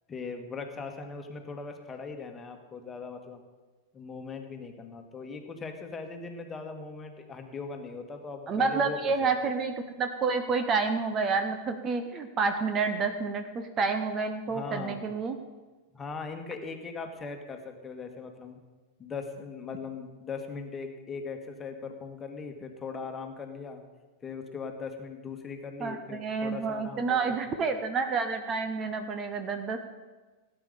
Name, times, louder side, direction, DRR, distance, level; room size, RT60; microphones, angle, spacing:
voice 1, 0.1-3.4 3.9-9.5 14.5-15.1 15.9-18.6 19.0-23.8 24.2-27.4, left 4 dB, 20° left, 4 dB, 1.7 m, -39 dB
voice 2, 8.5-15.4 25.8-29.8, right 4 dB, 25° right, 7 dB, 1.0 m, -29 dB
17.5 x 9.3 x 5.1 m, 1.3 s
figure-of-eight pair, 90°, 0 cm